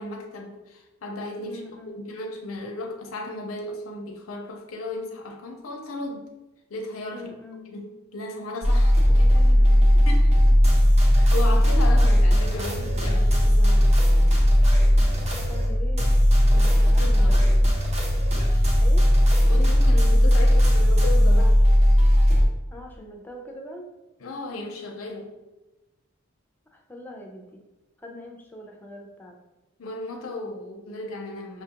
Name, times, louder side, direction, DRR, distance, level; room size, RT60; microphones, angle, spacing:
voice 1, 0.0-1.6 2.0-6.3 6.7-7.3 7.7-9.3 9.5-10.4 11.3-14.1 16.5-17.4 19.5-21.6 24.2-25.4 29.8-31.6, left 2 dB, 85° left, 2 dB, 0.6 m, -35 dB
voice 2, 1.4-2.1 7.1-7.7 9.1-9.9 10.4-10.5 11.1-11.4 12.0-12.1 15.3-16.1 16.5-17.5 18.8-19.1 22.7-23.9 26.7-27.6 28.0-29.4, left 1 dB, 10° left, 1 dB, 0.4 m, -43 dB
sound 1, 8.6-22.5, equal, 30° right, 0.7 m, -18 dB
5.6 x 2.3 x 2.8 m, 1.1 s
head